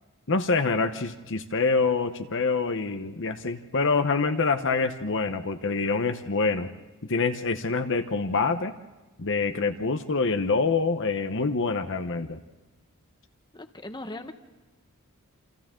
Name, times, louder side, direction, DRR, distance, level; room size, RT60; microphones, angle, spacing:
voice 1, 0.3-6.7 7.1-8.7 9.2-12.4, left 4 dB, 55° left, 7 dB, 1.0 m, -26 dB
voice 2, 13.5-14.3, left 1 dB, 20° left, 6 dB, 1.2 m, -38 dB
28.5 x 27.5 x 3.8 m, 1.2 s
head